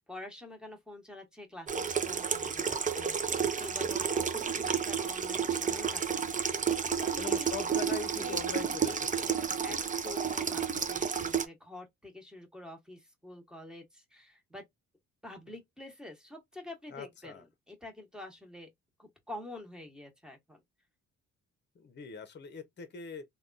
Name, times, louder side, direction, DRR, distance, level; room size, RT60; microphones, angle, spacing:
voice 1, 0.0-9.0 9.6-9.8 10.0-14.6 15.2-18.7 19.0-20.6, left 2 dB, ahead, 1.3 m, -47 dB
Water tap faucet / Sink (filling or washing), 1.7-11.4, right 7 dB, 25° right, 0.6 m, -31 dB
voice 2, 7.2-9.6 16.9-17.4 21.7-23.2, left 5 dB, 35° left, 0.8 m, -41 dB
3.3 x 2.3 x 2.5 m
cardioid pair, 90°, 30 cm